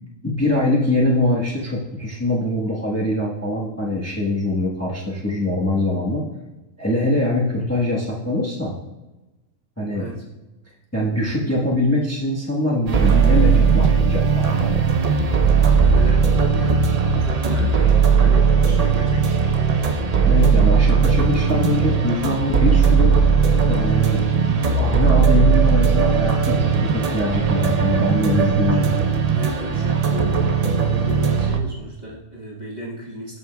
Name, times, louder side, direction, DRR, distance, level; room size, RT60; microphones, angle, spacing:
voice 1, 0.2-6.2 6.8-8.7 9.8-10.1 10.9-14.8 20.2-23.2 23.7-24.2 24.7-29.0, left 1 dB, 10° left, -5 dB, 1.0 m, -23 dB
voice 2, 9.9-10.2 15.4-16.9 17.2-20.0 29.3-33.4, right 1 dB, 30° right, -5 dB, 1.3 m, -34 dB
sound 1, 12.9-31.6, right 6 dB, 70° right, 0.3 m, -18 dB
13.0 x 5.4 x 2.3 m, 1.1 s
omnidirectional pair, 1.5 m